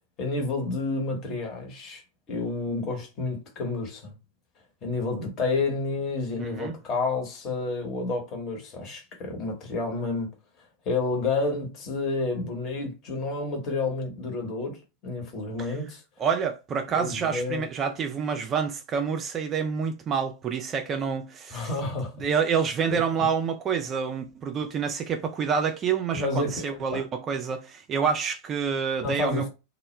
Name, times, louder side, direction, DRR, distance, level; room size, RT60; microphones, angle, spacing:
voice 1, 0.2-2.0 2.3-4.2 4.8-10.3 10.8-16.0 16.9-17.7 21.5-22.3 22.9-23.0 26.1-27.0 29.0-29.5, left 3 dB, 35° left, 0.9 m, -30 dB
voice 2, 6.4-6.8 16.2-21.7 22.2-29.5, right 6 dB, 25° right, 0.3 m, -28 dB
2.1 x 2.0 x 3.1 m
figure-of-eight pair, 90°, 0 cm